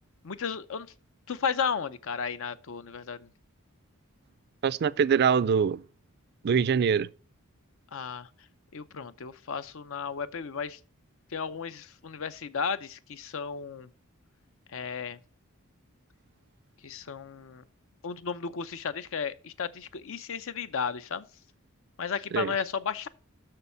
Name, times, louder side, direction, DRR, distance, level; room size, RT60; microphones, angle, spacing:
voice 1, 0.2-0.9 1.3-3.3 7.9-8.3 8.7-10.8 11.3-13.9 14.7-15.2 16.8-17.6 18.0-21.3 22.0-23.1, left 6 dB, 65° left, 0.6 m, -34 dB
voice 2, 4.6-5.8 6.4-7.1 22.3-22.5, right 6 dB, 50° right, 0.3 m, -24 dB
6.7 x 6.3 x 6.8 m
head